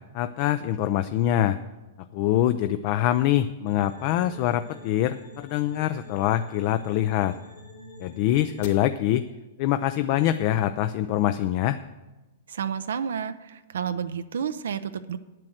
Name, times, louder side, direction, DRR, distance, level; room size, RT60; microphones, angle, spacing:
voice 1, 0.1-1.6 2.1-7.4 8.0-9.3 9.6-11.8, left 12 dB, 45° left, 11 dB, 0.4 m, -24 dB
sound 1, 3.7-8.7, left 2 dB, 65° left, 2.8 m, -46 dB
voice 2, 12.5-15.2, right 7 dB, 85° right, 11 dB, 0.5 m, -30 dB
8.8 x 7.5 x 7.8 m, 1.1 s
hypercardioid pair, 140°, 0 cm